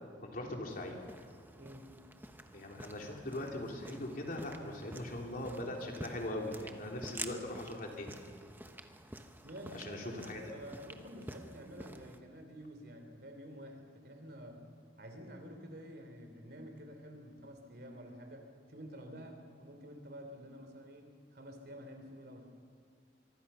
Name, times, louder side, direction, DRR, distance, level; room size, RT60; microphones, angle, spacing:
voice 1, 0.2-1.0 2.5-8.2 9.7-10.4, left 1 dB, 50° left, 0 dB, 3.5 m, -40 dB
sound 1, 0.7-12.2, right 1 dB, 10° right, 1.0 m, -50 dB
voice 2, 1.5-1.9 9.4-14.6 15.0-22.5, equal, 60° right, 5 dB, 3.5 m, -49 dB
24.5 x 24.0 x 5.7 m, 2.1 s
head